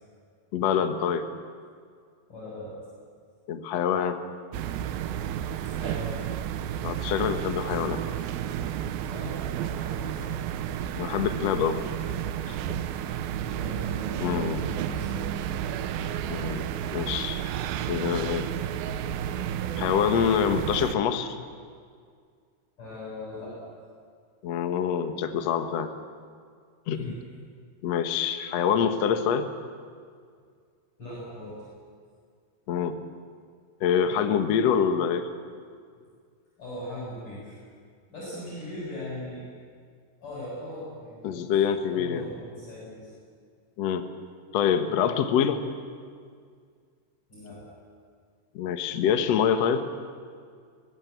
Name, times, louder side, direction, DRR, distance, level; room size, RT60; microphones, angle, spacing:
voice 1, 0.5-1.3 3.5-4.2 6.8-8.0 10.9-11.8 12.5-12.6 14.2-14.6 16.3-16.7 16.9-17.5 17.9-18.5 19.8-21.4 24.4-25.9 26.9-27.1 27.8-29.5 32.7-33.0 33.8-35.3 41.2-42.2 43.8-44.1 44.5-45.6 48.5-49.9, left 8 dB, 75° left, 8 dB, 1.5 m, -25 dB
voice 2, 2.3-2.8 5.6-6.2 9.1-10.4 13.4-15.3 22.8-23.6 26.9-27.2 31.0-31.6 36.6-37.6 38.1-39.5 40.2-41.4 41.9-43.1 47.3-47.6, left 1 dB, 30° left, -7 dB, 8.0 m, -39 dB
sound 1, 4.5-21.0, right 10 dB, 75° right, 2.4 m, -31 dB
23.5 x 17.0 x 8.4 m, 2.1 s
omnidirectional pair, 4.9 m